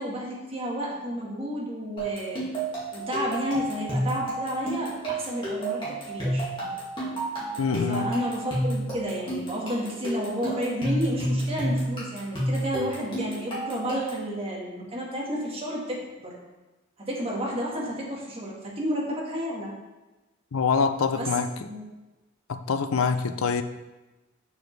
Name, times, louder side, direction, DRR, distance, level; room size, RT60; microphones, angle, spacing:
voice 1, 0.0-2.4 2.9-5.8 6.1-6.5 7.9-16.3 17.1-19.7 21.2-21.3 21.6-21.8 22.9-23.4, equal, 30° right, -4 dB, 1.7 m, -31 dB
sound 1, 2.0-14.3, right 1 dB, 25° left, 2.2 m, -30 dB
voice 2, 7.6-8.1 20.5-21.6 22.5-23.6, left 5 dB, 90° left, 10 dB, 0.5 m, -25 dB
7.0 x 6.0 x 3.4 m, 1.1 s
head